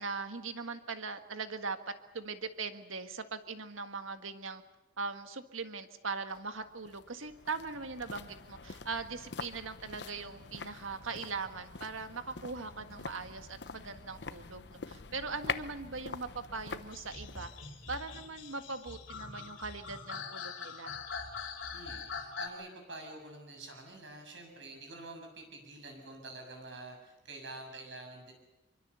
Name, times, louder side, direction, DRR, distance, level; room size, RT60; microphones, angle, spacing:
voice 1, 0.0-4.6 5.0-17.5 17.9-21.0, right 4 dB, 90° right, 8 dB, 1.7 m, -40 dB
sound 1, 6.3-19.5 19.7-19.8, left 4 dB, 55° left, 0.9 m, -45 dB
sound 2, 16.9-22.5, left 5 dB, 75° left, 3.1 m, -43 dB
voice 2, 21.7-28.3, right 2 dB, 65° right, 3 dB, 7.2 m, -47 dB
25.0 x 23.5 x 6.9 m, 0.98 s
head